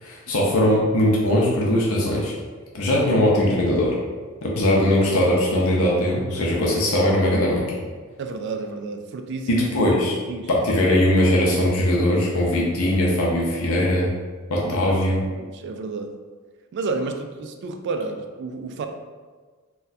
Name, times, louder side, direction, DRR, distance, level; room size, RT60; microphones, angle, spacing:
voice 1, 0.0-2.3 2.7-3.9 4.4-7.6 9.5-10.2 10.5-14.1 14.5-15.2, left 1 dB, 75° left, -3 dB, 0.6 m, -20 dB
voice 2, 8.2-9.7 10.3-10.6 14.6-15.1 15.4-16.2 16.7-18.9, right 3 dB, 55° right, 6 dB, 0.3 m, -31 dB
4.0 x 2.2 x 2.6 m, 1.4 s
head